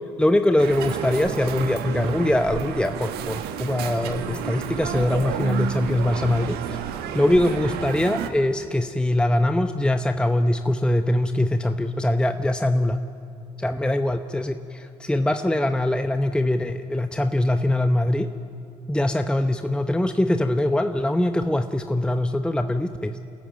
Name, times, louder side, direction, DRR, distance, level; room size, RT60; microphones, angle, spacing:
voice 1, 0.2-6.8 7.1-13.0 13.6-18.3 18.9-23.2, left 1 dB, 5° left, 8 dB, 0.8 m, -22 dB
sound 1, 0.6-8.3, right 8 dB, 70° right, 1.4 m, -31 dB
27.5 x 14.0 x 9.0 m, 2.6 s
hypercardioid pair, 60°, 17 cm